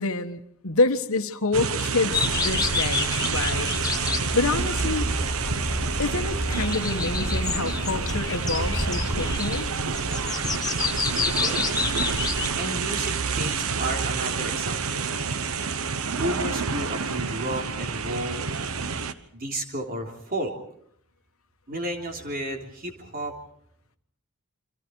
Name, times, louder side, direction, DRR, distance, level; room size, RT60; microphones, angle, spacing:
voice 1, 0.0-3.7 4.1-5.1 6.0-9.7, left 3 dB, 65° left, 8 dB, 1.4 m, -27 dB
sound 1, 1.5-19.1, right 5 dB, 70° right, 1.1 m, -28 dB
sound 2, 2.1-12.5, left 3 dB, 15° left, 1.5 m, -29 dB
voice 2, 11.4-11.8 12.6-15.2 16.1-18.5 19.3-20.5 21.7-23.3, right 1 dB, 40° right, 3 dB, 3.5 m, -32 dB
28.5 x 25.0 x 4.7 m, 0.66 s
head